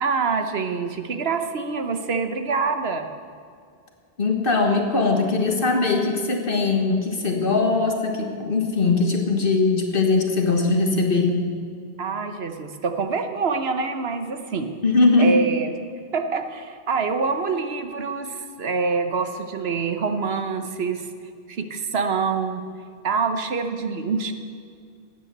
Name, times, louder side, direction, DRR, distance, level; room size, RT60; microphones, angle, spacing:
voice 1, 0.0-3.1 12.0-14.7 15.2-15.7 16.1-21.1 21.5-22.6 23.0-24.3, right 4 dB, 75° right, 7 dB, 1.3 m, -25 dB
voice 2, 4.2-11.4 14.8-15.4, left 3 dB, 60° left, 3 dB, 1.6 m, -20 dB
13.0 x 9.0 x 8.0 m, 2.2 s
omnidirectional pair, 1.1 m